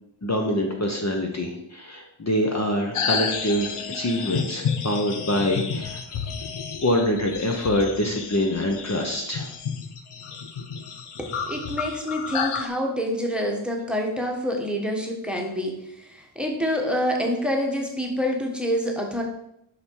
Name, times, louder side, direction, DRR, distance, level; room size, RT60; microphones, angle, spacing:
voice 1, 0.2-6.0 6.8-9.5, left 1 dB, 35° left, 1 dB, 1.0 m, -25 dB
sound 1, 2.9-12.7, left 6 dB, 85° left, 0.9 m, -31 dB
voice 2, 11.2-19.2, equal, ahead, 1 dB, 1.3 m, -27 dB
6.9 x 5.9 x 4.7 m, 0.78 s
wide cardioid pair, 115°, 49 cm